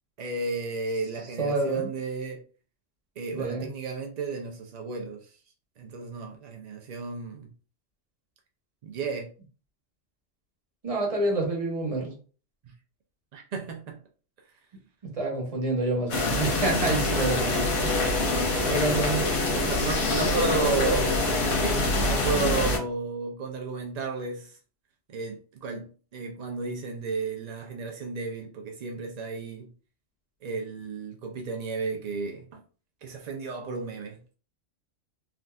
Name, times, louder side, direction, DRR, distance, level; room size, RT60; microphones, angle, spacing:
voice 1, 0.2-2.4 3.2-5.3 5.8-7.5 8.8-9.3 13.3-14.0 17.8-18.1 18.5-19.1 19.5-21.3 22.0-24.6 25.1-29.7 30.4-32.4 33.0-34.2, right 4 dB, 75° right, 0.3 m, -33 dB
voice 2, 1.4-1.9 3.3-3.7 10.8-12.1 15.1-18.0 18.6-19.2, right 2 dB, 30° right, 0.9 m, -28 dB
sound 1, 16.1-22.8, left 2 dB, 70° left, 1.3 m, -25 dB
3.6 x 2.5 x 2.3 m
omnidirectional pair, 1.3 m